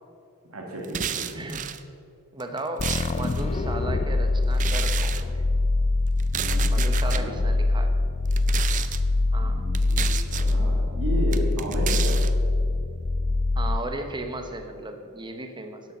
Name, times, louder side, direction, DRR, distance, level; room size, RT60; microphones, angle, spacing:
voice 1, 0.5-1.4 6.3-7.4 9.3-12.2, equal, 75° right, -2 dB, 2.1 m, -34 dB
sound 1, 0.8-1.8 2.4-3.4 4.5-5.2 6.2-7.2 8.3-9.0 9.7-10.5 11.3-12.3, right 9 dB, 35° right, 0.5 m, -31 dB
voice 2, 1.3-1.7 2.3-5.5 6.7-7.9 9.3-9.7 13.6-15.8, right 2 dB, 20° right, 6 dB, 1.0 m, -35 dB
sound 2, 2.8-14.3, left 2 dB, 30° left, 0.4 m, -24 dB
11.5 x 8.2 x 6.1 m, 2.5 s
head